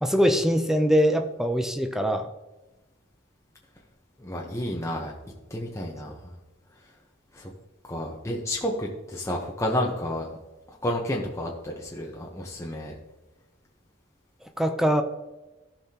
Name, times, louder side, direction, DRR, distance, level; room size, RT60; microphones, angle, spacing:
voice 1, 0.0-2.3 14.6-15.0, equal, ahead, 6 dB, 0.5 m, -22 dB
voice 2, 4.2-5.1 5.5-6.3 7.3-7.5 7.8-10.3 10.7-12.9, left 1 dB, 15° left, -1 dB, 0.9 m, -31 dB
15.0 x 5.7 x 2.9 m, 1.1 s
head